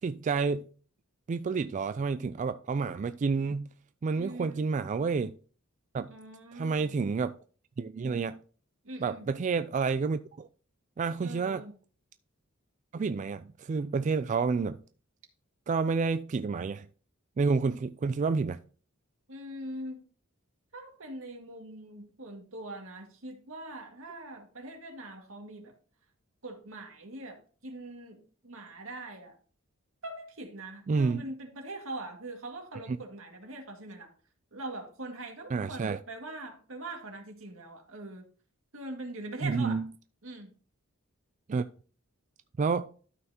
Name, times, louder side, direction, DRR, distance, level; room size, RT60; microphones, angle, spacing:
voice 1, 0.0-0.7 1.3-3.7 4.0-5.3 5.9-6.1 6.5-7.3 7.8-8.4 9.0-10.5 11.0-11.6 12.9-14.8 15.7-16.9 17.4-18.6 30.9-31.3 32.9-33.0 35.5-36.0 39.4-39.9 41.5-41.7 42.6-42.9, right 4 dB, 35° right, 0.3 m, -29 dB
voice 2, 4.2-4.7 6.1-6.9 8.8-9.3 11.2-11.7 19.3-20.0 20.7-25.7 26.4-29.4 30.0-34.1 34.5-38.3 38.7-39.8 40.2-40.5, right 2 dB, 80° right, 2.0 m, -42 dB
12.5 x 5.7 x 2.8 m
head